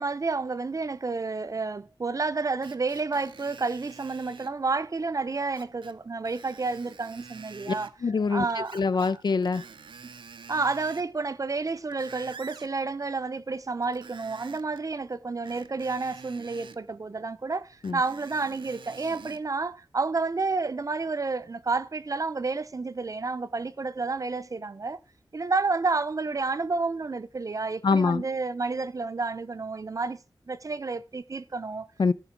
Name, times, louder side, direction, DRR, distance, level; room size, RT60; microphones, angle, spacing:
voice 1, 0.0-7.9 8.3-8.8 10.5-25.0 25.3-30.2 30.5-31.9, right 3 dB, 40° right, 0.6 m, -30 dB
Screech, 2.6-4.5 5.5-6.0 6.3-7.9 8.6-9.2 9.4-11.1 11.6-12.7 13.8-14.8 15.4-16.8 17.8-19.4 20.0-20.1, right 5 dB, 80° right, 0.6 m, -47 dB
voice 2, 8.0-9.6 17.8-18.0 27.8-28.2 32.0-32.1, left 4 dB, 60° left, 0.4 m, -24 dB
14.5 x 5.2 x 5.9 m
wide cardioid pair, 95°, 8 cm